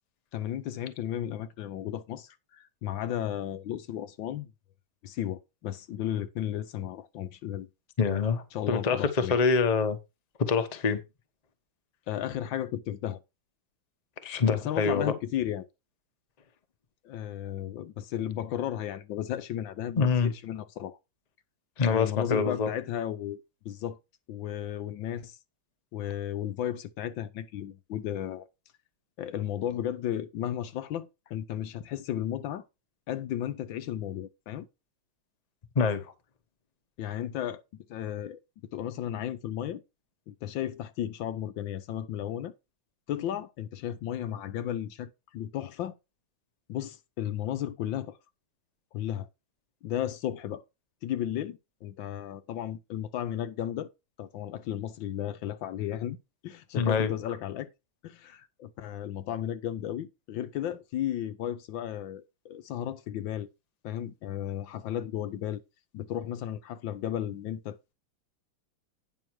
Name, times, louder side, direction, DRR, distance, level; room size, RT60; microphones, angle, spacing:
voice 1, 0.3-4.5 5.0-7.7 8.5-9.4 12.1-13.2 14.5-15.6 17.0-21.0 21.9-24.0 24.3-25.4 25.9-28.4 29.2-32.6 33.1-34.7 37.0-38.4 38.7-39.8 40.3-42.5 43.1-45.9 46.7-48.2 48.9-49.3 49.8-50.6 51.0-53.9 54.2-56.2 56.4-57.7 58.0-63.5 63.8-65.6 65.9-67.9, left 11 dB, 75° left, 1.4 m, -34 dB
voice 2, 8.0-10.0 10.4-11.0 14.2-15.1 20.0-20.3 21.8-22.7 35.7-36.1 56.8-57.1, left 5 dB, 30° left, 0.8 m, -25 dB
9.3 x 6.2 x 4.6 m
omnidirectional pair, 2.2 m